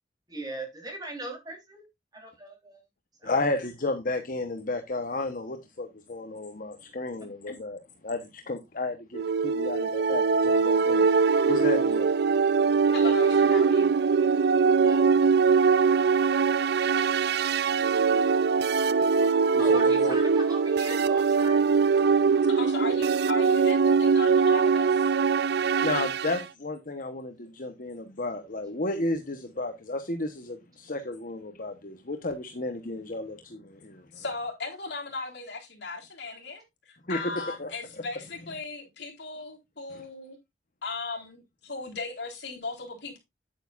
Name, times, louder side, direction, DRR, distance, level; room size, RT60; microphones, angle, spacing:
voice 1, 0.3-1.9 2.1-2.8 3.2-3.4 12.9-13.8 14.1-14.2 14.7-15.2 19.6-21.6, right 2 dB, 25° right, 3.7 m, -40 dB
voice 2, 3.2-11.1 11.4-12.2 19.5-20.2 25.8-34.2 37.1-37.7 39.9-40.0, left 2 dB, 50° left, 1.2 m, -33 dB
sound 1, 9.1-26.4, right 5 dB, 65° right, 0.4 m, -22 dB
voice 3, 12.9-14.0 22.5-25.1 34.1-40.4 40.8-43.2, left 3 dB, 70° left, 3.9 m, -37 dB
9.5 x 9.0 x 2.6 m
head